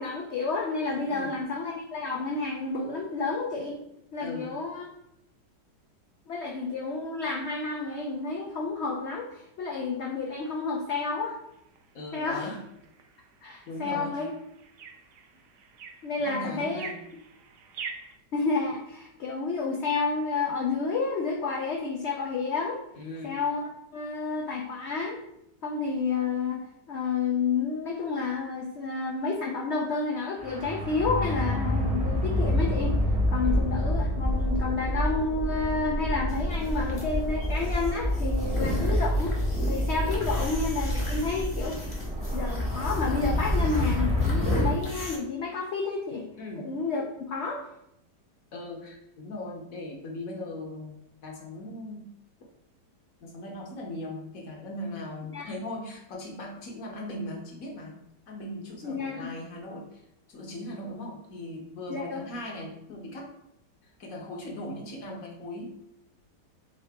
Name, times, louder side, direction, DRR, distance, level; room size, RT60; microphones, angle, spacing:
voice 1, 0.0-3.8 4.1-4.8 6.3-11.4 12.1-12.6 13.4-14.3 16.0-16.9 18.3-22.8 23.2-25.2 25.6-26.6 26.9-33.0 33.3-39.3 39.7-41.8 42.3-46.2 46.6-47.0 47.3-47.6 55.3-55.5 58.8-59.3 61.9-62.2, left 4 dB, 80° left, -1 dB, 0.6 m, -30 dB
voice 2, 4.2-4.5 6.4-6.6 11.9-12.6 13.7-14.2 16.3-17.0 22.9-23.4 33.4-33.8 38.4-38.7 46.4-46.7 48.5-52.1 53.2-58.0 58.3-60.0 60.3-63.3 63.8-65.6, left 1 dB, 60° left, 0 dB, 1.2 m, -39 dB
sound 1, 11.2-18.2, right 6 dB, 75° right, 0.7 m, -46 dB
sound 2, 30.4-44.7, left 1 dB, 10° right, 0.4 m, -27 dB
sound 3, 36.3-45.2, left 1 dB, 25° left, 0.7 m, -37 dB
3.8 x 3.8 x 3.4 m, 0.80 s
omnidirectional pair, 1.9 m